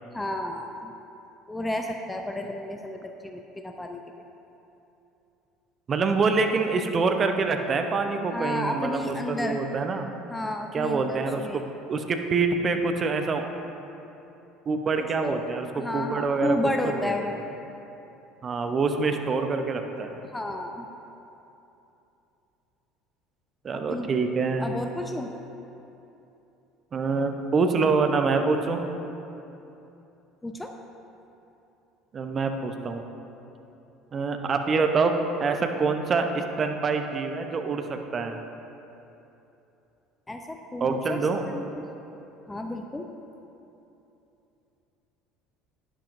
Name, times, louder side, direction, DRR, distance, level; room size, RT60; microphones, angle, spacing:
voice 1, 0.1-0.9 1.5-4.0 8.3-9.6 10.3-11.6 15.0-15.4 15.7-17.4 20.2-20.9 23.9-24.1 24.6-25.3 30.4-30.7 40.3-41.9 42.5-43.1, left 1 dB, 10° left, 4 dB, 0.6 m, -32 dB
voice 2, 5.9-10.1 10.7-11.6 11.9-13.5 14.7-15.7 15.9-16.6 16.8-17.1 18.4-20.2 23.6-24.7 26.9-28.8 32.1-33.0 34.1-35.1 35.4-38.4 40.8-41.4, right 4 dB, 35° right, 6 dB, 0.8 m, -25 dB
11.0 x 10.0 x 2.6 m, 2.9 s
figure-of-eight pair, 60°, 0 cm